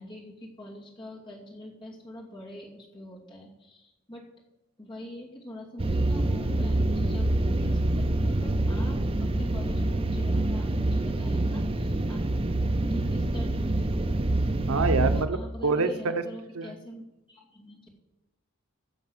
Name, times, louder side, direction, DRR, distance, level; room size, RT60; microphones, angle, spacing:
voice 1, 0.0-4.3 4.8-12.2 12.8-13.9 15.1-17.9, equal, 20° left, -2 dB, 2.5 m, -43 dB
sound 1, 5.8-15.2, right 1 dB, 25° right, 0.6 m, -26 dB
voice 2, 14.7-15.4 15.6-16.2 16.6-16.7, right 4 dB, 85° right, 9 dB, 0.9 m, -26 dB
14.5 x 6.9 x 6.2 m, 1.0 s
head